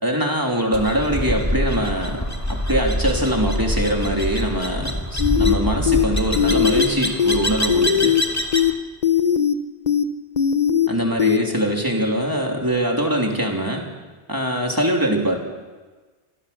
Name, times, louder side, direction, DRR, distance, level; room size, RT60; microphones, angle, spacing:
voice 1, 0.0-2.2 2.5-8.1 10.9-13.8 14.3-15.4, right 1 dB, 20° right, 1 dB, 3.2 m, -22 dB
sound 1, 0.7-8.7, equal, 15° left, 2.2 m, -25 dB
sound 2, 5.2-5.5 5.9-6.0 6.4-6.9 7.2-7.4 7.7-8.2 8.5-8.7 9.0-9.5 9.9-10.0 10.4-10.9 11.2-11.4, left 9 dB, 40° left, 1.0 m, -18 dB
25.5 x 16.5 x 7.0 m, 1.3 s
omnidirectional pair, 1.2 m